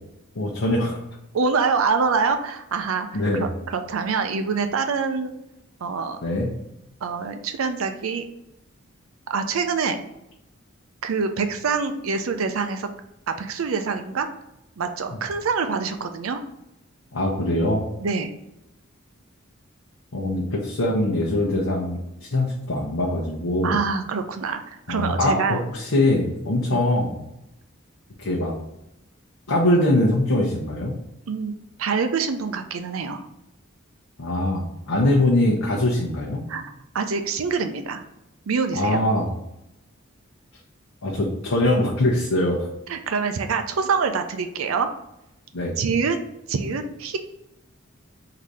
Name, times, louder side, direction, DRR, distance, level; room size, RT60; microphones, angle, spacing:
voice 1, 0.3-1.0 3.1-3.5 6.2-6.5 17.1-17.8 20.1-23.8 24.9-27.1 28.2-28.5 29.5-30.9 34.2-36.4 38.7-39.3 41.0-42.7 45.5-45.8, left 1 dB, 85° left, -4 dB, 0.8 m, -22 dB
voice 2, 1.3-5.3 5.8-6.2 7.0-8.3 9.3-10.0 11.0-12.9 13.3-14.3 14.8-16.4 18.0-18.3 23.6-25.6 31.3-31.5 31.8-33.3 36.5-38.0 38.5-39.0 42.9-44.9 45.8-46.2 46.5-47.2, right 5 dB, 90° right, 7 dB, 0.5 m, -25 dB
3.9 x 2.8 x 4.7 m, 0.86 s
head